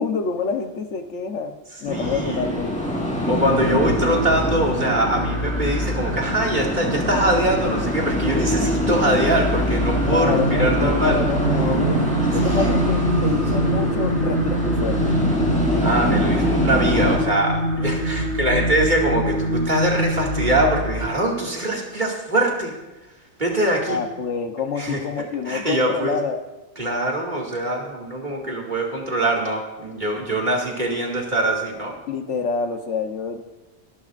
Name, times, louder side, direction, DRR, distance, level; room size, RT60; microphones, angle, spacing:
voice 1, 0.0-1.5 1.8-3.0 10.0-12.0 12.3-15.2 23.9-26.4 32.1-33.4, left 5 dB, 85° left, 6 dB, 1.3 m, -27 dB
sound 1, 1.9-17.2, equal, 5° left, 3.8 m, -26 dB
voice 2, 1.9-2.6 3.3-11.2 12.3-12.8 15.8-22.7 23.4-24.0 24.8-25.0 25.5-26.2 26.8-32.0, right 1 dB, 40° right, -2 dB, 2.5 m, -23 dB
sound 2, 3.4-21.0, equal, 75° right, 4.4 m, -24 dB
22.5 x 11.5 x 2.6 m, 1.1 s
omnidirectional pair, 1.2 m